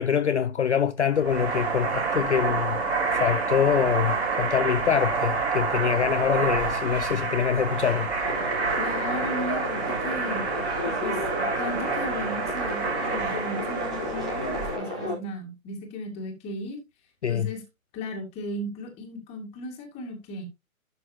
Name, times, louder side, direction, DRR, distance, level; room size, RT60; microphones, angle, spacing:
voice 1, 0.0-2.8 3.2-8.1 17.2-17.5, left 8 dB, 55° left, 0.5 m, -25 dB
sound 1, 1.1-14.8, right 5 dB, 50° right, 3.8 m, -28 dB
Trumpet, 2.4-9.3, left 1 dB, 80° right, 4.1 m, -41 dB
sound 2, 8.2-15.1, left 1 dB, 5° right, 0.5 m, -32 dB
voice 2, 8.8-10.4 10.9-16.8 17.3-17.6 17.9-20.4, left 1 dB, 15° left, 2.0 m, -36 dB
11.5 x 6.4 x 2.8 m
figure-of-eight pair, 135°, 43 cm